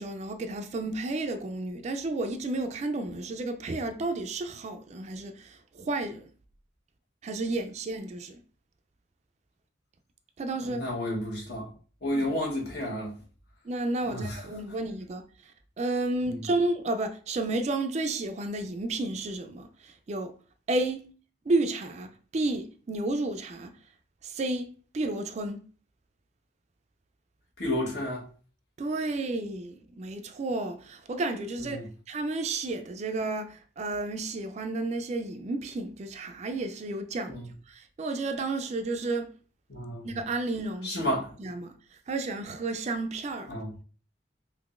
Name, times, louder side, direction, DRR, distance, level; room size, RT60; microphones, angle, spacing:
voice 1, 0.0-6.3 7.2-8.4 10.4-10.8 12.1-12.3 13.7-15.2 15.8-20.3 20.7-21.1 21.5-23.7 24.2-25.6 28.8-31.8 32.1-37.4 37.7-39.3 40.0-41.1 41.4-41.7 42.1-43.5, right 2 dB, 40° right, 0.3 m, -32 dB
voice 2, 10.6-11.7 12.0-13.1 14.0-14.4 16.3-16.4 27.6-28.2 31.6-31.9 37.3-37.4 39.7-40.1 40.8-41.3 43.5-43.7, left 1 dB, 65° left, 1.2 m, -31 dB
3.6 x 2.9 x 2.4 m
head